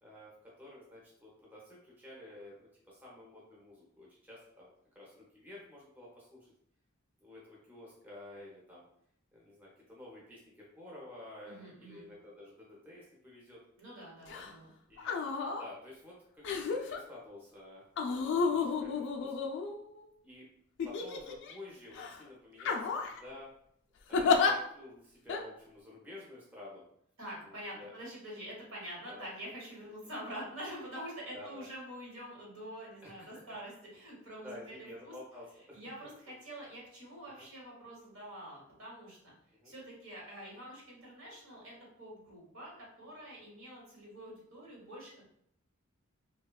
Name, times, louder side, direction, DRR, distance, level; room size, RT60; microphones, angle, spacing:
voice 1, 0.0-0.3 0.6-6.5 7.2-8.8 9.3-13.6 14.2-14.5 14.9-15.2 15.5-17.8 18.3-19.4 20.2-20.5 20.8-23.5 24.1-26.8 27.4-27.9 29.1-29.3 31.3-31.7 33.0-33.3 34.4-35.8 37.4-37.5 39.5-39.7, left 1 dB, 10° right, -5 dB, 0.5 m, -51 dB
voice 2, 11.4-12.1 13.8-14.7 27.2-35.1 35.7-39.3 39.6-45.2, equal, 70° right, -4 dB, 1.1 m, -46 dB
sound 1, 14.3-14.5 15.0-15.7 16.4-17.0 18.0-20.0 20.8-21.5 22.0-22.2 22.6-23.2 24.1-24.5 25.3-25.4, left 5 dB, 60° left, 0.3 m, -31 dB
2.9 x 2.1 x 2.2 m, 0.70 s
head